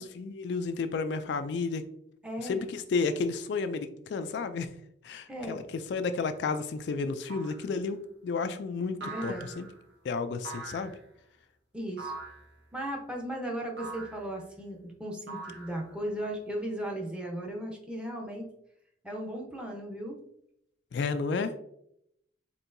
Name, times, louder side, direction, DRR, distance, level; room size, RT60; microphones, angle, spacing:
voice 1, 0.0-1.8 2.4-4.7 5.0-5.6 5.9-9.7 10.0-10.9 20.9-21.5, left 4 dB, 65° left, 9 dB, 0.3 m, -32 dB
voice 2, 2.2-2.6 5.3-5.6 9.0-9.5 11.7-12.1 12.7-18.5 19.0-20.2, right 1 dB, 5° right, 0 dB, 0.7 m, -36 dB
sound 1, 7.3-7.7 9.0-9.8 10.4-11.0 12.0-12.5 13.8-14.3 15.3-16.0, right 3 dB, 70° right, 1.5 m, -42 dB
4.4 x 3.8 x 2.6 m, 0.76 s
head